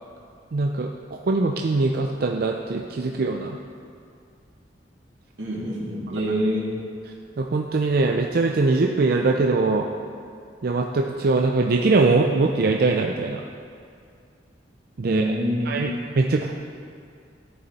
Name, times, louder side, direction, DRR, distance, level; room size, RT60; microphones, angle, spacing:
voice 1, 0.5-3.6 7.4-9.9 10.6-13.4 15.0-15.4 15.7-16.5, right 3 dB, 55° right, 2 dB, 0.5 m, -22 dB
voice 2, 5.4-6.7 15.0-15.9, equal, 90° right, -6 dB, 2.7 m, -26 dB
13.5 x 6.9 x 4.2 m, 2.3 s
head